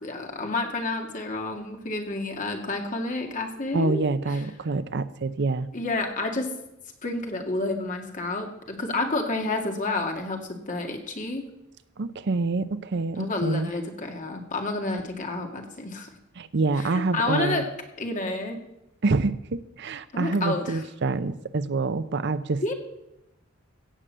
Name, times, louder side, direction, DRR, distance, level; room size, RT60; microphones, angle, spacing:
voice 1, 0.0-4.0 4.3-4.4 5.7-6.5 7.0-11.4 13.2-16.1 16.8-17.7 18.0-18.6 20.1-20.8 22.6-22.7, left 2 dB, 40° left, 3 dB, 2.2 m, -29 dB
voice 2, 3.7-5.7 12.0-13.7 16.4-17.7 19.0-22.7, right 3 dB, 60° right, 14 dB, 0.6 m, -26 dB
16.5 x 6.6 x 7.6 m, 0.88 s
head